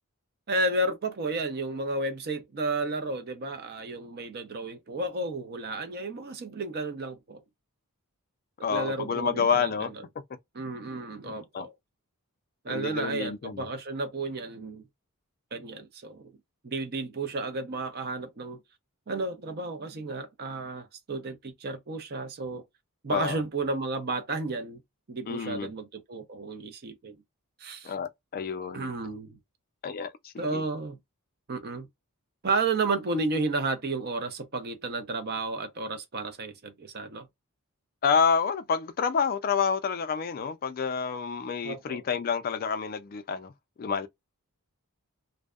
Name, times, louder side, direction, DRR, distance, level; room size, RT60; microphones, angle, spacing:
voice 1, 0.5-7.4 8.7-9.9 10.5-11.7 12.6-14.8 15.5-16.3 16.6-18.6 19.1-22.6 23.0-24.8 25.1-27.2 27.6-27.9 28.7-29.4 30.4-31.0 31.5-31.9 32.4-37.3 41.6-42.0, right 3 dB, 45° right, 0.5 m, -32 dB
voice 2, 8.6-9.9 11.2-11.7 12.7-13.7 23.1-23.4 25.3-25.7 27.8-28.9 29.8-30.6 38.0-43.5 43.8-44.1, left 6 dB, 40° left, 0.3 m, -28 dB
2.6 x 2.1 x 2.3 m
head